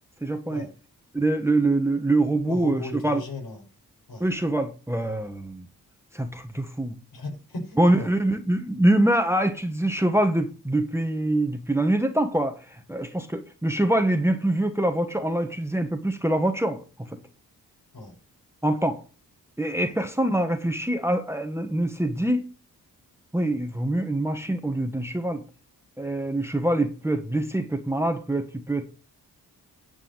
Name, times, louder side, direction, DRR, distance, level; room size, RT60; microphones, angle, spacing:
voice 1, 0.2-0.6 1.1-3.2 4.2-5.7 6.1-6.9 7.8-16.8 18.6-19.0 19.6-22.5 23.3-25.4 26.0-28.9, right 1 dB, 5° right, 6 dB, 1.3 m, -24 dB
voice 2, 2.4-3.6 4.1-4.3 7.1-8.1 17.9-18.1 19.8-19.9, left 2 dB, 65° left, 2 dB, 5.3 m, -36 dB
10.0 x 5.5 x 7.9 m, 0.36 s
cardioid pair, 80°, 38 cm